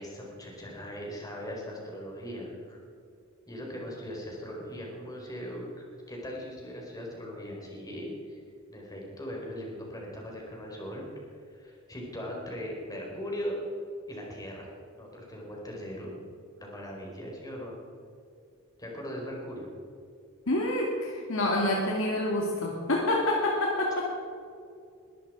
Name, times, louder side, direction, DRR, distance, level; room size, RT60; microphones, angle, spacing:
voice 1, 0.0-2.8 3.5-5.7 6.1-8.4 8.7-13.6 14.1-14.7 15.0-16.2 16.6-17.8 18.8-19.7, equal, 20° left, -1 dB, 4.4 m, -39 dB
voice 2, 20.5-24.0, left 1 dB, 70° left, -1 dB, 2.4 m, -27 dB
21.5 x 13.0 x 4.9 m, 2.5 s
head